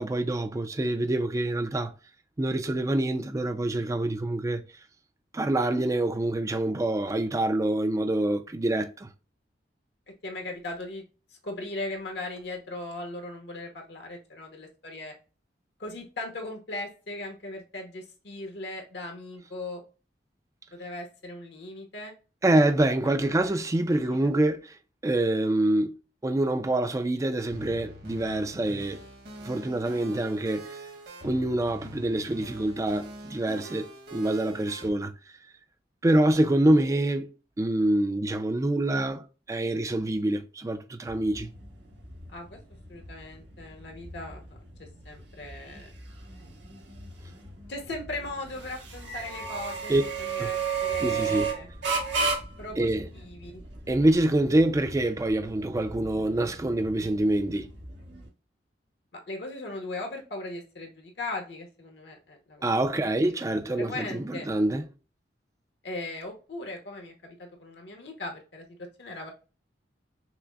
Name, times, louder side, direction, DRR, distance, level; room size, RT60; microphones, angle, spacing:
voice 1, 0.0-1.9 2.4-4.6 5.3-9.1 22.4-24.8 25.0-26.0 26.2-29.0 29.4-30.8 31.2-35.1 36.0-37.3 37.6-41.5 49.9-50.0 50.4-50.5 51.0-51.5 52.8-53.1 53.9-57.7 62.6-64.9, right 1 dB, 20° right, 0.3 m, -26 dB
voice 2, 10.2-11.0 11.3-15.1 15.8-19.8 20.7-22.1 23.2-23.6 23.9-24.3 42.3-42.6 42.9-44.4 45.0-45.9 47.7-51.7 52.6-52.9 53.1-53.6 59.1-62.7 63.7-64.5 65.8-69.3, left 2 dB, 65° left, 0.9 m, -38 dB
sound 1, 27.5-34.9, right 1 dB, 60° right, 1.4 m, -44 dB
sound 2, 41.1-58.3, right 5 dB, 85° right, 1.5 m, -35 dB
5.8 x 2.0 x 2.3 m
head